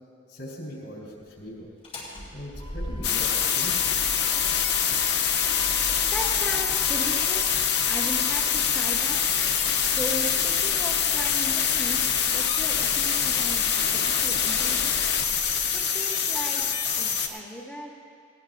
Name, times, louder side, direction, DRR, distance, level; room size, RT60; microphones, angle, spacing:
voice 1, 0.3-1.7 2.3-4.2, equal, 80° left, -3 dB, 3.7 m, -40 dB
Motor vehicle (road), 1.7-16.4, left 1 dB, 30° left, 2.9 m, -42 dB
sound 1, 3.0-17.3, left 7 dB, 55° left, 0.9 m, -24 dB
voice 2, 6.0-9.2 9.8-15.2 15.7-16.6 16.9-17.9, equal, 5° left, -3 dB, 0.9 m, -37 dB
18.0 x 17.5 x 2.6 m, 2.4 s
head